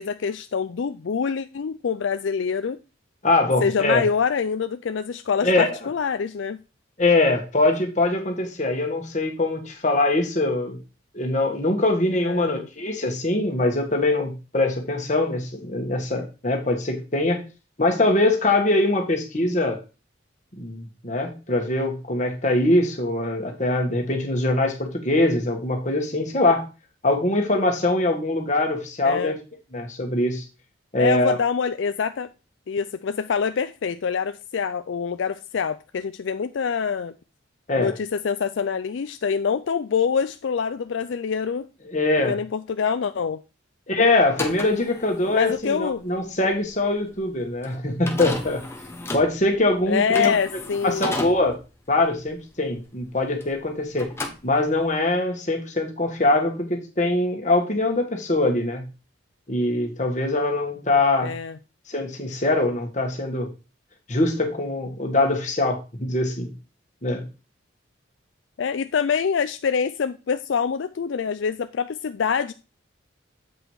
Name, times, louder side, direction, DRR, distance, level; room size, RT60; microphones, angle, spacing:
voice 1, 0.0-2.8 3.6-6.6 12.2-12.7 29.0-29.4 31.0-32.3 32.7-37.1 37.8-41.7 42.3-43.4 45.3-46.0 49.9-51.2 61.2-61.6 68.6-72.5, left 6 dB, 70° left, 0.4 m, -25 dB
voice 2, 3.2-4.1 5.4-5.7 7.0-10.8 11.1-17.4 17.8-19.8 20.6-26.6 27.0-29.4 29.7-30.4 30.9-31.4 37.7-37.9 41.8-42.4 43.9-48.6 49.1-50.3 50.8-51.6 51.9-54.1 54.4-58.9 59.5-61.3 61.9-63.5 64.1-66.5 67.0-67.2, left 2 dB, 35° left, 1.7 m, -23 dB
sound 1, 44.2-53.7 53.9-55.0, left 2 dB, 15° left, 1.1 m, -34 dB
8.0 x 5.1 x 4.7 m
head